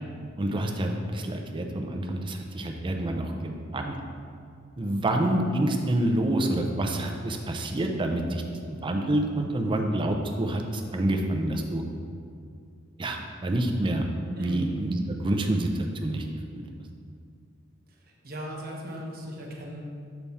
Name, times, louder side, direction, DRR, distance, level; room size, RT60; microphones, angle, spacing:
voice 1, 0.4-4.0 4.8-8.4 8.7-11.8 13.0-14.1 14.4-16.3 16.5-16.6, right 1 dB, 25° right, 3 dB, 0.5 m, -27 dB
voice 2, 18.2-19.8, equal, 50° right, -1 dB, 1.0 m, -37 dB
6.9 x 3.5 x 4.1 m, 2.3 s
head